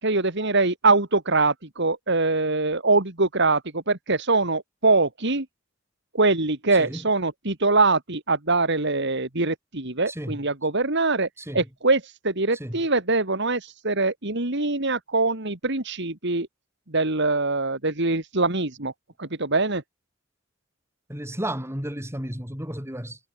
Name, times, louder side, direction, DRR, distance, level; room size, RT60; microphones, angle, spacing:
voice 1, 0.0-5.5 6.1-11.3 11.5-16.5 16.9-18.9 19.2-19.8, right 3 dB, 55° right, 3.0 m, -23 dB
voice 2, 21.1-23.2, right 1 dB, 10° right, 7.4 m, -32 dB
head